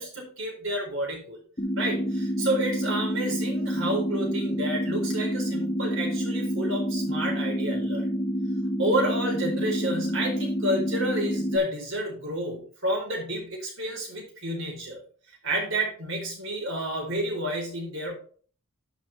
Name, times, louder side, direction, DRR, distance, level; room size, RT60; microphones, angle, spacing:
voice 1, 0.0-1.4 1.8-8.1 8.8-15.0 15.4-18.2, right 1 dB, 60° right, 0 dB, 4.3 m, -30 dB
sound 1, 1.6-11.6, equal, 30° left, 1.4 m, -28 dB
12.0 x 6.0 x 3.5 m, 0.43 s
head